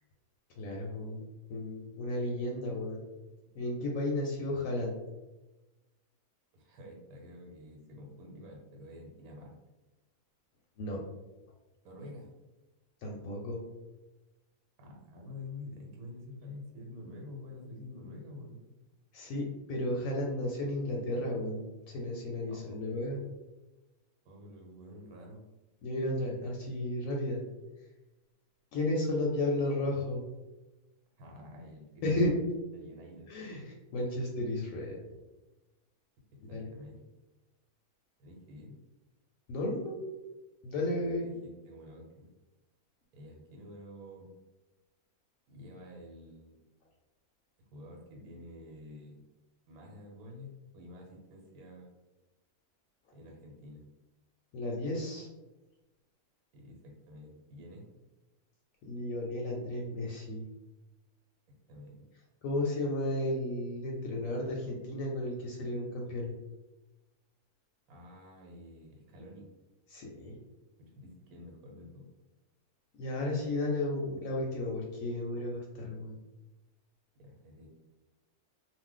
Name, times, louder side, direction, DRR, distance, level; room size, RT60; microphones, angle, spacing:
voice 1, 0.5-3.0 3.5-5.0 10.8-11.0 13.0-13.7 19.1-23.2 25.8-27.4 28.7-30.2 32.0-32.4 33.3-35.0 36.5-36.7 39.5-40.0 40.6-41.2 54.5-55.3 58.9-60.4 62.4-66.3 69.9-70.4 72.9-76.2, left 1 dB, 70° left, -1 dB, 0.9 m, -33 dB
voice 2, 6.5-9.6 11.8-12.3 14.8-18.6 22.5-22.7 24.2-25.4 31.2-32.3 32.7-33.3 36.5-37.0 38.2-38.8 41.0-42.3 43.1-44.3 45.5-46.6 47.7-49.2 49.7-51.9 53.1-53.9 56.5-57.8 61.7-62.0 67.9-69.5 70.8-72.1 77.1-77.7, left 1 dB, 80° right, 0 dB, 1.2 m, -49 dB
2.5 x 2.1 x 3.7 m, 1.1 s
omnidirectional pair, 1.6 m